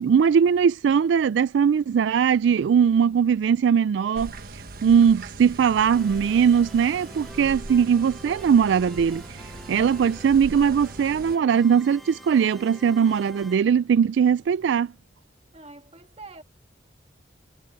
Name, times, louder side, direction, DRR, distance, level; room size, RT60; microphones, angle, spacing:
voice 1, 0.0-14.9, right 7 dB, 75° right, 0.3 m, -20 dB
sound 1, 4.1-11.4, right 2 dB, 55° right, 1.2 m, -40 dB
sound 2, 5.9-13.6, equal, ahead, 0.6 m, -46 dB
voice 2, 15.5-16.4, right 3 dB, 35° right, 2.0 m, -44 dB
head